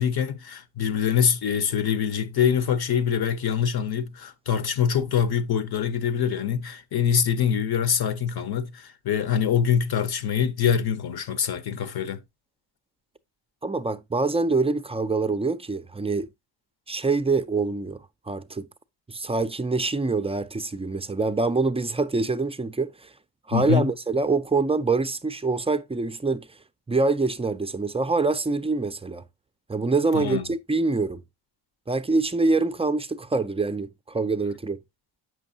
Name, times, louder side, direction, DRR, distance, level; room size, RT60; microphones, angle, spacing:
voice 1, 0.0-12.2 23.5-23.9 30.1-30.4, left 8 dB, 55° left, 0.9 m, -24 dB
voice 2, 13.6-16.3 16.9-18.0 18.3-18.7 19.1-23.1 23.5-26.5 26.9-29.2 29.7-31.2 31.9-34.8, right 3 dB, 15° right, 0.3 m, -25 dB
8.2 x 6.1 x 2.7 m
cardioid pair, 125°, 45 cm